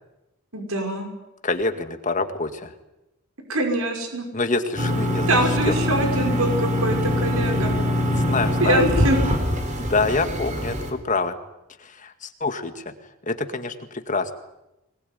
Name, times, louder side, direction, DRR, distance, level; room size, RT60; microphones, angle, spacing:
voice 1, 0.5-1.1 3.5-4.3 5.3-7.7 8.6-9.2, right 1 dB, 75° right, 4 dB, 5.7 m, -23 dB
voice 2, 1.4-2.7 4.3-5.4 5.7-5.8 8.1-8.8 9.8-11.4 11.8-12.9 13.2-14.3, left 3 dB, 35° left, 8 dB, 2.0 m, -26 dB
sound 1, 4.8-10.9, left 1 dB, 35° right, 4.1 m, -23 dB
24.0 x 21.0 x 9.4 m, 0.93 s
head